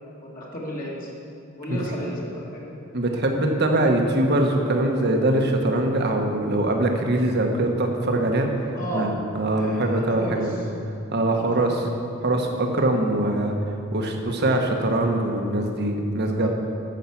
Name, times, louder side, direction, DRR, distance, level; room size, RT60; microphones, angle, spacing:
voice 1, 0.2-1.1 1.6-2.8 8.7-9.1 9.5-10.5 11.3-11.8 16.4-16.5, equal, 40° left, -5 dB, 2.1 m, -33 dB
voice 2, 2.9-8.5 8.9-10.6 11.1-11.7 12.2-13.5 13.9-16.5, right 1 dB, 50° right, 2 dB, 1.2 m, -22 dB
10.5 x 7.2 x 7.1 m, 2.7 s
head